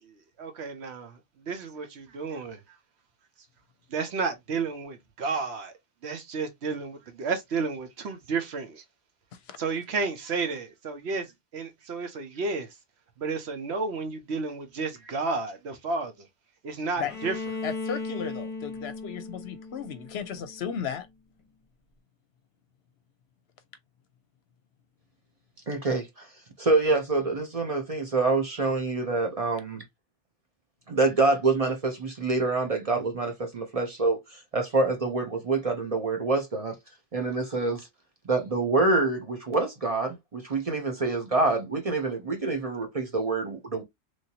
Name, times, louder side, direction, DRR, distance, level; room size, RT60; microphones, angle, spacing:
voice 1, 0.1-1.2 1.4-2.6 3.9-5.7 6.0-8.8 9.6-12.7 13.2-16.3 16.6-17.4, right 4 dB, 70° right, 1.0 m, -32 dB
Bowed string instrument, 17.1-20.9, left 3 dB, 30° left, 0.8 m, -37 dB
voice 2, 17.6-21.1, left 7 dB, 65° left, 0.8 m, -35 dB
voice 3, 25.7-26.3 26.6-29.8 30.9-36.8 37.1-37.9 38.3-43.8, right 3 dB, 40° right, 0.6 m, -26 dB
3.1 x 2.6 x 2.7 m
omnidirectional pair, 1.2 m